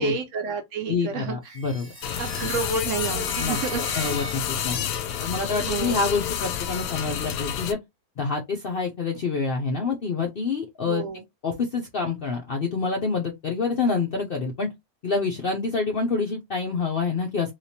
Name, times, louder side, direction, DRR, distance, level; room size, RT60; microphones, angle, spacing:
voice 1, 0.0-1.6 2.2-4.2 5.6-6.0 10.9-11.2, right 6 dB, 65° right, 0.8 m, -30 dB
voice 2, 0.9-1.9 3.4-4.9 5.2-7.8 8.2-14.7 15.0-17.5, left 4 dB, 60° left, 0.6 m, -27 dB
sound 1, 1.4-4.8, right 1 dB, 10° left, 0.8 m, -40 dB
sound 2, 2.0-7.7, left 9 dB, 75° left, 1.1 m, -29 dB
3.3 x 2.8 x 2.7 m
omnidirectional pair, 1.6 m